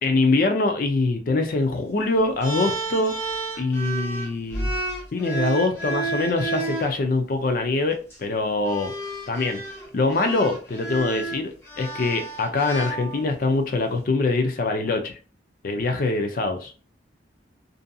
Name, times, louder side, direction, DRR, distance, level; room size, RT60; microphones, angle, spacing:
voice 1, 0.0-3.2 3.6-4.7 5.1-8.9 9.3-9.6 9.9-15.2 15.6-16.7, left 3 dB, 50° left, 0.4 m, -24 dB
sound 1, 2.4-6.9 7.9-8.2 8.7-13.5, right 3 dB, 15° left, 0.9 m, -31 dB
2.6 x 2.5 x 2.3 m
head